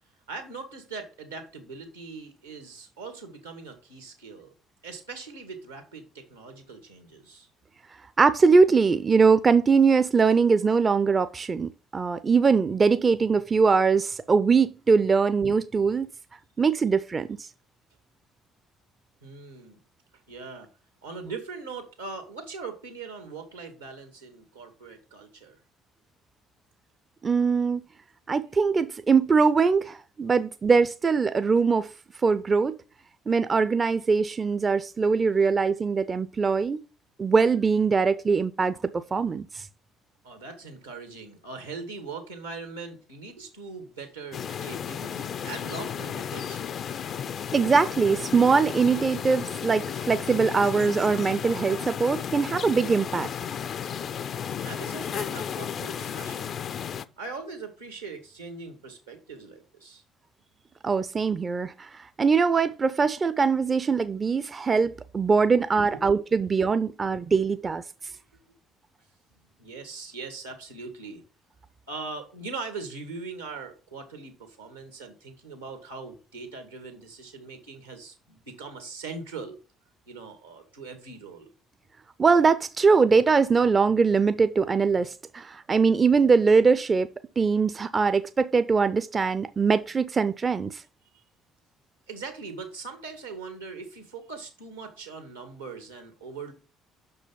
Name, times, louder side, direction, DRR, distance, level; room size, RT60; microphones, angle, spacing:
voice 1, 0.3-4.5 4.8-7.5 19.2-19.8 20.1-20.7 21.0-25.6 40.2-46.8 54.6-56.6 57.2-60.0 65.8-66.2 67.4-67.5 68.3-68.4 69.6-71.2 71.9-79.6 80.1-81.5 91.1-91.2 92.1-96.5, right 4 dB, 85° right, 1.7 m, -41 dB
voice 2, 8.2-16.1 16.6-17.4 27.2-27.8 28.3-31.9 32.2-32.8 33.3-36.8 37.2-39.7 47.5-53.3 60.8-67.8 82.2-87.1 87.4-90.8, right 5 dB, 30° right, 0.5 m, -22 dB
sound 1, 44.3-57.0, left 8 dB, 50° left, 0.4 m, -34 dB
6.2 x 5.5 x 5.6 m
figure-of-eight pair, 50°, 0 cm